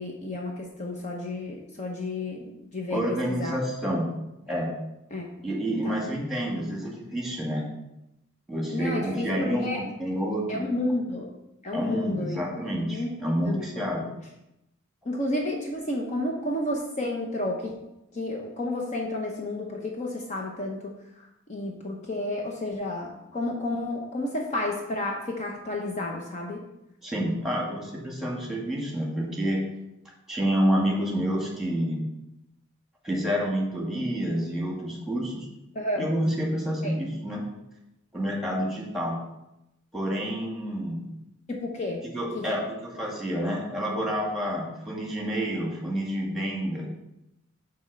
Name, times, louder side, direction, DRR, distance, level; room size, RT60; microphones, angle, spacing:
voice 1, 0.0-3.0 3.3-3.6 5.1-5.2 5.8-6.0 8.7-9.8 10.5-11.3 11.6-12.4 12.9-13.9 15.1-17.7 18.1-20.9 21.2-26.6 35.7-36.1 36.8-37.0 41.5-42.0 42.3-42.4, left 1 dB, 35° left, 0 dB, 0.9 m, -31 dB
voice 2, 2.9-4.1 4.5-4.7 5.4-7.6 8.5-10.7 11.7-14.1 27.0-29.6 30.3-32.0 33.0-35.5 36.0-37.4 38.1-39.2 39.9-41.0 42.0-46.9, equal, ahead, -2 dB, 1.8 m, -28 dB
6.2 x 4.3 x 6.1 m, 0.88 s
head